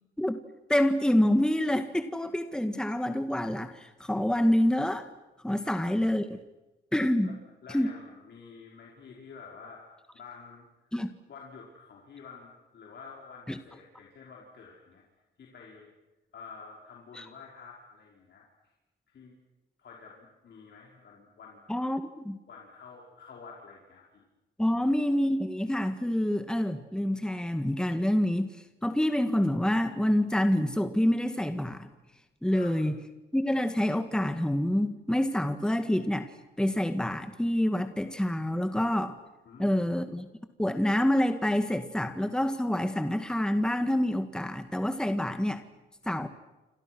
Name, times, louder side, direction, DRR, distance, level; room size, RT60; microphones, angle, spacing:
voice 1, 0.7-5.1 5.4-6.4 6.9-7.3 7.7-7.9 10.9-11.1 13.5-13.6 17.2-17.3 21.7-22.4 24.6-28.5 28.8-31.9 32.4-33.0 33.3-36.3 36.6-39.1 39.6-40.3 40.6-45.6 46.1-46.3, left 1 dB, 5° left, 8 dB, 1.9 m, -27 dB
voice 2, 5.6-5.9 7.2-7.4 7.6-9.8 10.1-10.7 11.3-15.0 15.4-15.9 16.3-18.4 19.1-19.4 19.8-21.6 22.5-24.2 24.7-24.9 32.5-32.7 39.5-39.9, left 5 dB, 60° left, -2 dB, 5.4 m, -49 dB
29.5 x 27.0 x 6.3 m, 1.0 s
cardioid pair, 90°, 20 cm